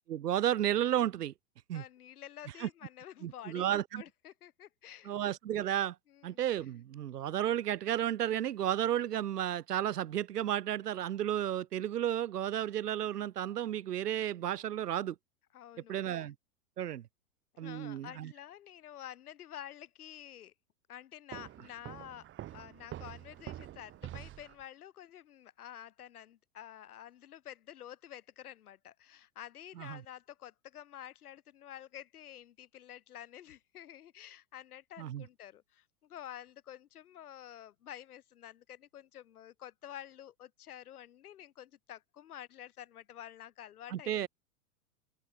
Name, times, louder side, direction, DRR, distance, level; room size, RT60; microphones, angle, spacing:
voice 1, 0.1-1.3 1.7-1.8 2.6-2.7 3.2-4.0 5.1-5.9 6.2-15.2 15.9-16.3 16.8-17.0 17.6-18.3 29.8-30.0 35.0-35.2 43.9-44.3, right 11 dB, 80° right, 0.9 m, -32 dB
voice 2, 1.7-5.2 6.1-6.4 15.5-16.3 17.5-20.5 20.9-44.3, left 11 dB, 70° left, 3.0 m, -50 dB
Walk footsteps, 21.3-24.6, right 13 dB, 25° right, 1.5 m, -46 dB
hypercardioid pair, 105°, 47 cm